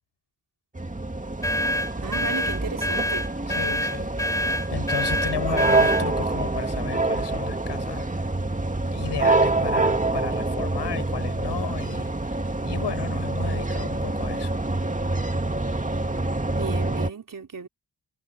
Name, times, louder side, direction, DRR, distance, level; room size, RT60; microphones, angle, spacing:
sound 1, 0.7-17.1, right 2 dB, 20° right, 2.7 m, -26 dB
sound 2, 1.4-6.1, left 1 dB, 5° left, 0.7 m, -26 dB
voice 1, 2.0-3.3 16.5-17.7, right 5 dB, 45° right, 4.3 m, -35 dB
voice 2, 3.5-8.2 8.8-14.6, left 8 dB, 70° left, 7.0 m, -34 dB
supercardioid pair, 50°, 43 cm